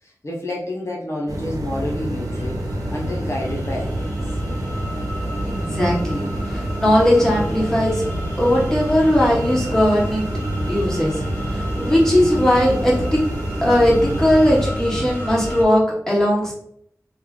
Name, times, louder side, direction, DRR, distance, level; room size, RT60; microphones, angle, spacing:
voice 1, 0.0-2.6 2.9-4.1, left 1 dB, 50° left, -3 dB, 0.6 m, -29 dB
sound 1, 1.3-14.7, right 1 dB, 80° right, 0.5 m, -27 dB
sound 2, 1.9-15.6, equal, 35° left, 1.3 m, -32 dB
voice 2, 5.4-8.0 8.4-10.2 10.7-13.2 13.6-16.5, equal, 10° left, -5 dB, 1.4 m, -18 dB
3.1 x 2.1 x 3.6 m, 0.70 s
wide cardioid pair, 60°, 6 cm